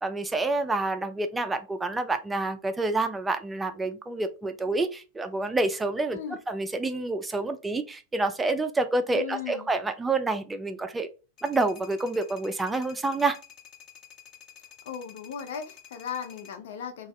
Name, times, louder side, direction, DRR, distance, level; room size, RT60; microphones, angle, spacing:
voice 1, 0.0-11.1 11.4-13.4, right 2 dB, 10° right, 8 dB, 0.3 m, -28 dB
voice 2, 9.1-9.7 14.8-17.1, left 8 dB, 55° left, 6 dB, 0.4 m, -37 dB
sound 1, 11.4-16.5, left 8 dB, 30° left, 0.8 m, -50 dB
2.5 x 2.3 x 3.0 m, 0.31 s
figure-of-eight pair, 90°, 0 cm